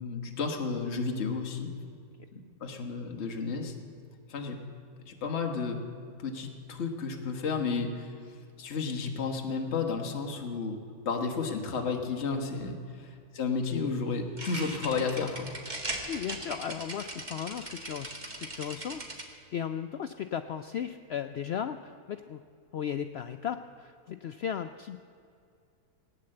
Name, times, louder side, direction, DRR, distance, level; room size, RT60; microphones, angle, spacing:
voice 1, 0.0-1.7 2.3-3.7 4.3-4.6 5.1-5.8 6.2-15.5, left 4 dB, 45° left, 3 dB, 1.5 m, -32 dB
sound 1, 14.2-19.2, right 1 dB, 30° right, 1.8 m, -39 dB
voice 2, 16.1-19.2 19.5-22.4 22.7-25.0, left 8 dB, 85° left, 8 dB, 0.5 m, -36 dB
18.5 x 9.5 x 7.7 m, 2.5 s
omnidirectional pair, 1.7 m